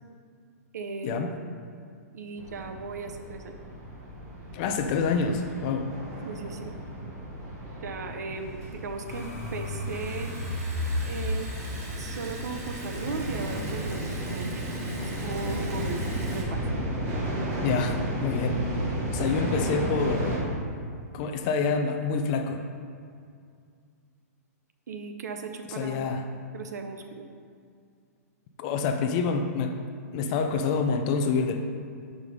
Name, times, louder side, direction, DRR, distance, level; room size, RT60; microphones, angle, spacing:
voice 1, 0.7-1.5 2.1-3.6 6.3-6.8 7.8-10.3 11.0-11.5 12.0-14.6 15.0-16.0 16.3-16.6 24.9-26.1 26.5-27.3, right 4 dB, 90° right, 6 dB, 0.7 m, -37 dB
sound 1, 2.4-20.4, right 1 dB, 25° right, 1.1 m, -33 dB
voice 2, 4.5-5.9 17.6-18.6 19.1-20.4 21.1-22.6 25.8-26.2 28.6-29.8 30.1-31.6, left 5 dB, 30° left, 5 dB, 0.4 m, -27 dB
Liquid, 8.3-16.4, right 2 dB, 60° right, 1.5 m, -44 dB
sound 2, 9.1-14.0, left 2 dB, 65° left, 1.4 m, -35 dB
5.6 x 4.8 x 5.2 m, 2.2 s
hypercardioid pair, 165°, 9 cm